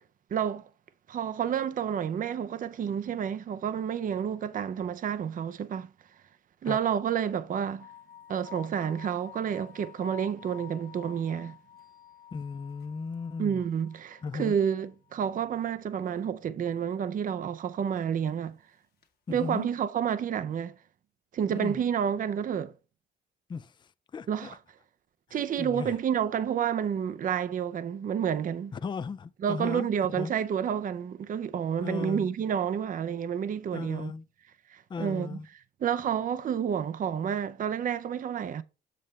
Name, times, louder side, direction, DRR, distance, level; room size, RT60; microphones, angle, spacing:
voice 1, 0.3-0.7 1.1-5.9 6.6-7.9 8.3-11.6 13.4-18.6 19.3-20.7 21.3-22.7 24.3-24.6 25.3-28.7 29.4-34.1 34.7-35.4 35.8-38.6, right 8 dB, 45° right, 0.5 m, -30 dB
sound 1, 7.8-15.5 15.8-15.9 19.0-19.1, left 11 dB, 50° left, 1.4 m, -50 dB
voice 2, 12.3-13.6 14.2-14.5 19.3-19.7 21.5-21.8 23.5-24.6 25.3-25.9 28.7-30.3 31.8-32.3 33.7-34.3 34.9-35.5, left 5 dB, 25° left, 0.4 m, -36 dB
7.5 x 3.3 x 5.3 m
cardioid pair, 90°, 20 cm